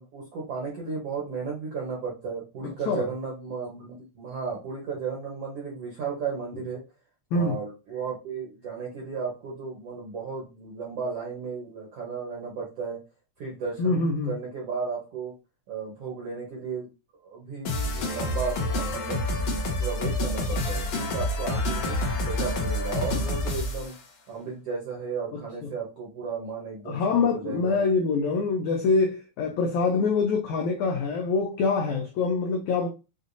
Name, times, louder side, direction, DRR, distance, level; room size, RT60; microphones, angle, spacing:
voice 1, 0.0-6.8 7.3-13.0 13.4-15.3 15.7-16.9 17.2-19.2 19.8-22.0 22.3-23.9 24.3-27.8, right 5 dB, 65° right, 1.5 m, -34 dB
voice 2, 2.6-3.1 7.3-7.6 13.8-14.3 25.3-25.4 26.9-32.9, left 4 dB, 85° left, 1.6 m, -25 dB
sound 1, 17.7-23.9, left 1 dB, 65° left, 1.6 m, -28 dB
6.6 x 2.6 x 2.6 m
omnidirectional pair, 4.2 m